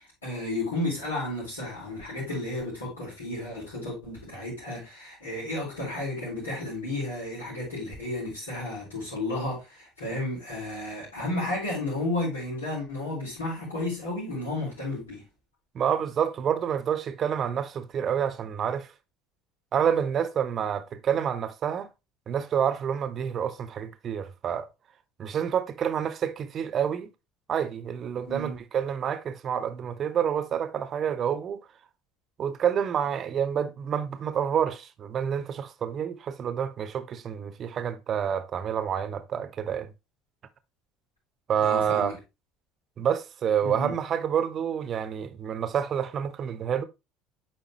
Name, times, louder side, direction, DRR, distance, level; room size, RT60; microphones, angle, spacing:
voice 1, 0.2-15.2 28.3-28.5 41.6-42.1 43.6-44.0, left 2 dB, 85° left, 4.5 m, -32 dB
voice 2, 15.7-18.9 19.7-21.9 22.3-24.7 25.2-27.1 27.5-31.6 32.4-39.9 41.5-42.1 43.0-46.8, right 8 dB, 45° right, 0.9 m, -28 dB
9.0 x 5.2 x 3.0 m
hypercardioid pair, 65°, 0 cm